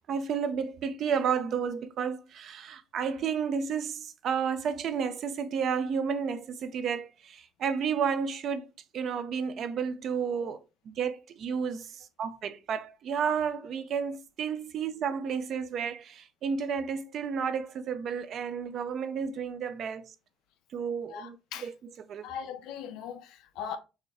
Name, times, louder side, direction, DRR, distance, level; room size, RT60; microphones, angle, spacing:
voice 1, 0.1-8.7 8.9-10.6 10.9-20.1 20.7-21.4 21.6-21.7 22.1-22.2, right 6 dB, 60° right, 0.6 m, -31 dB
voice 2, 21.1-21.7 22.2-23.8, left 7 dB, 75° left, 0.6 m, -39 dB
6.4 x 2.3 x 3.3 m
supercardioid pair, 70°, 0 cm